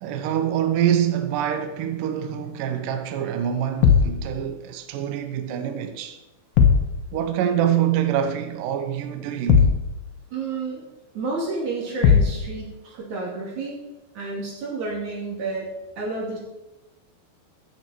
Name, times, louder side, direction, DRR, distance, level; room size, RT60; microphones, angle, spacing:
voice 1, 0.0-6.2 7.1-9.8, right 9 dB, 85° right, 1.9 m, -25 dB
sound 1, 3.8-4.2 6.6-6.9 9.5-9.9 12.0-12.4, left 6 dB, 70° left, 2.5 m, -16 dB
voice 2, 10.3-10.8 11.1-13.7 14.1-15.7 16.0-16.4, right 3 dB, 45° right, 4.0 m, -30 dB
16.0 x 7.2 x 4.5 m
omnidirectional pair, 4.9 m